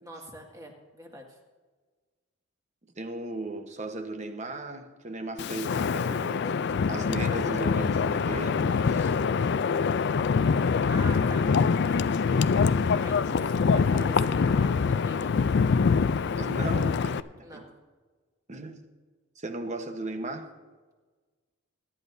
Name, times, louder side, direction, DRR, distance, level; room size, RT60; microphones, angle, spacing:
voice 1, 0.0-1.4 10.9-11.5 11.9-12.1 12.9-15.3 17.4-17.7, right 1 dB, 15° right, 2.1 m, -44 dB
voice 2, 3.0-6.6 6.9-9.1 16.4-17.7 18.5-18.8 19.4-20.6, right 2 dB, 35° right, 1.1 m, -37 dB
Wind, 5.4-17.2, left 5 dB, 55° left, 0.4 m, -24 dB
22.0 x 11.0 x 2.7 m
head